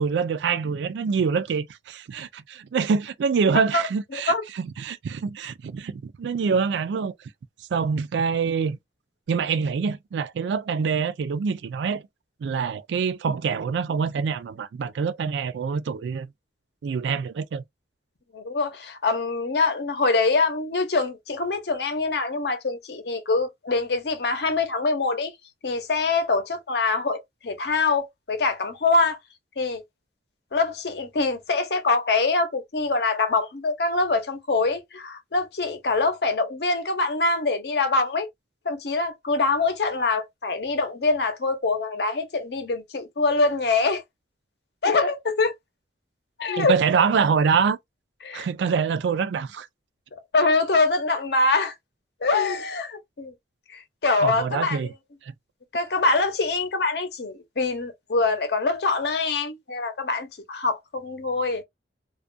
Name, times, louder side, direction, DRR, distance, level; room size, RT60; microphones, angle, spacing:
voice 1, 0.0-7.1 7.7-8.8 9.3-12.0 12.4-16.3 16.8-17.6 46.6-47.8 48.3-49.7 54.2-54.9 55.3-55.4, right 5 dB, 80° right, 0.3 m, -25 dB
voice 2, 4.1-4.4 18.3-25.3 25.6-29.2 29.6-29.8 30.5-38.3 38.6-44.0 44.8-45.5 46.4-46.7 48.2-48.5 50.1-51.7 52.2-53.3 53.7-54.9 55.7-61.6, left 3 dB, 65° left, 0.7 m, -24 dB
2.3 x 2.2 x 2.5 m
head